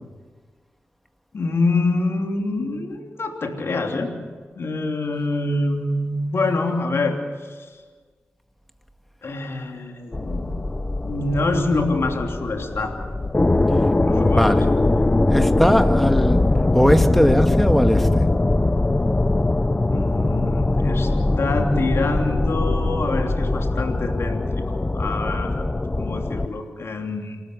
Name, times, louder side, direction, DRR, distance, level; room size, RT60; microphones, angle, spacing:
voice 1, 1.3-4.1 4.5-7.2 7.6-7.7 9.2-10.6 11.0-12.9 14.0-14.7 19.9-21.1 21.4-25.7 25.9-27.4, left 2 dB, 65° left, 3 dB, 3.1 m, -25 dB
sound 1, 10.1-26.5, left 2 dB, 25° left, 0.8 m, -21 dB
voice 2, 14.1-14.7 15.3-16.4 16.7-18.2, equal, 5° left, 7 dB, 2.0 m, -19 dB
27.5 x 13.5 x 8.0 m, 1.5 s
cardioid pair, 50°, 5 cm